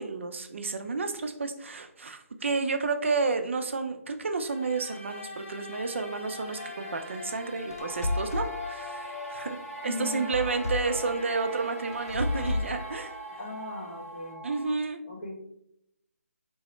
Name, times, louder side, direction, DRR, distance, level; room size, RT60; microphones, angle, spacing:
voice 1, 0.0-13.1 14.4-15.0, right 4 dB, 55° right, 7 dB, 0.3 m, -31 dB
sound 1, 4.4-14.3, left 3 dB, 70° left, 1.0 m, -42 dB
sound 2, 7.7-8.5 10.3-11.0 11.9-12.7, left 2 dB, 90° left, 0.4 m, -31 dB
sound 3, 7.8-14.7, right 2 dB, ahead, 0.6 m, -43 dB
voice 2, 9.8-10.3 13.4-14.4 15.1-15.4, left 3 dB, 40° left, -2 dB, 0.9 m, -38 dB
3.8 x 2.0 x 3.0 m, 0.79 s
hypercardioid pair, 170°, 8 cm